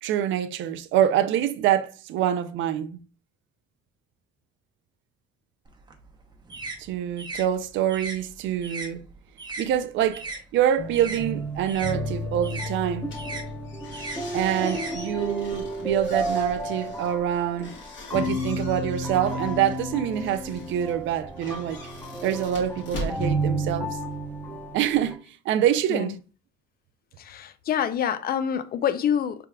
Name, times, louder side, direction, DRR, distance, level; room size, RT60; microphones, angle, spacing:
voice 1, 0.0-3.0 6.8-9.1 9.6-13.1 14.3-17.7 18.1-21.8 22.2-24.0 24.7-26.2, right 10 dB, 80° right, 0.4 m, -26 dB
sound 1, 5.7-10.4 10.7-15.6, right 2 dB, 20° right, 0.7 m, -39 dB
sound 2, 10.8-25.1, right 1 dB, 10° left, 0.8 m, -32 dB
sound 3, 13.0-24.2, left 1 dB, 70° left, 1.5 m, -42 dB
voice 2, 25.9-26.2 27.2-29.5, left 9 dB, 50° left, 0.4 m, -27 dB
4.7 x 3.4 x 2.2 m
cardioid pair, 105°, 20 cm